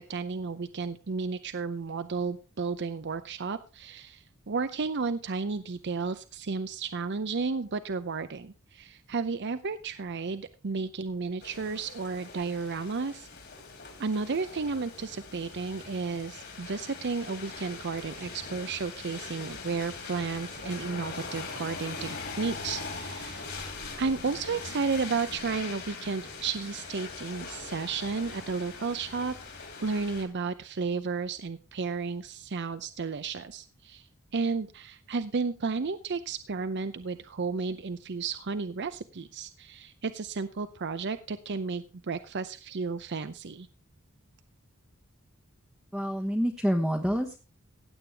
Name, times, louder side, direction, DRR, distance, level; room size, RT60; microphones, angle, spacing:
voice 1, 0.0-13.3 14.0-23.5 24.0-29.3 29.8-34.1 34.3-43.7, right 4 dB, 55° right, 12 dB, 0.6 m, -33 dB
sound 1, 11.4-30.2, left 4 dB, 50° left, 3.4 m, -41 dB
voice 2, 45.9-47.4, equal, ahead, 2 dB, 1.1 m, -27 dB
16.0 x 8.7 x 3.4 m, 0.32 s
head